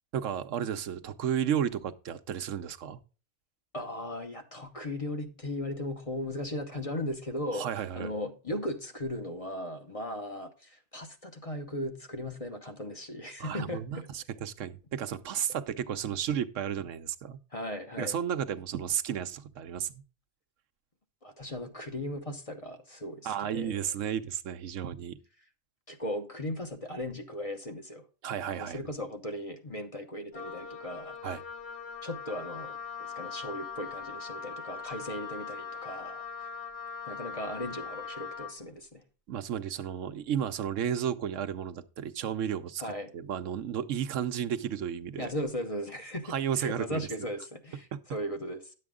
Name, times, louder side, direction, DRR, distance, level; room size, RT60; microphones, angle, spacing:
voice 1, 0.1-3.0 7.5-8.1 13.4-17.4 18.0-20.0 23.2-25.2 28.2-28.8 31.2-31.4 39.3-42.8 43.1-45.3 46.3-47.3, right 9 dB, 80° right, 1.1 m, -33 dB
voice 2, 3.7-14.1 17.5-18.2 21.2-23.8 25.9-28.0 28.6-31.2 32.0-36.5 37.1-39.0 42.8-43.1 45.2-48.7, left 1 dB, 30° left, 0.9 m, -37 dB
Wind instrument woodwind instrument, 30.3-38.6, left 6 dB, 50° left, 1.3 m, -41 dB
10.5 x 7.7 x 3.6 m
omnidirectional pair, 1.3 m